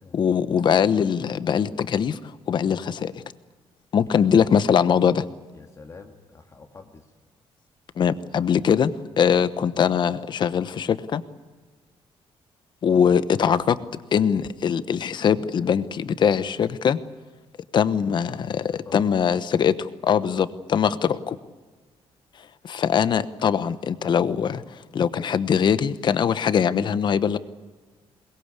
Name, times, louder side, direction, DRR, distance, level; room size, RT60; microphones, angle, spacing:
voice 1, 0.1-2.2 2.5-3.1 3.9-5.2 8.0-11.2 12.8-13.8 14.1-17.0 17.7-21.4 22.6-27.4, left 7 dB, 50° left, 13 dB, 1.1 m, -22 dB
voice 2, 4.1-4.5 5.5-7.1 18.7-19.0, left 4 dB, 30° left, 3 dB, 2.0 m, -46 dB
22.0 x 21.5 x 8.4 m, 1.3 s
cardioid pair, 155°, 10 cm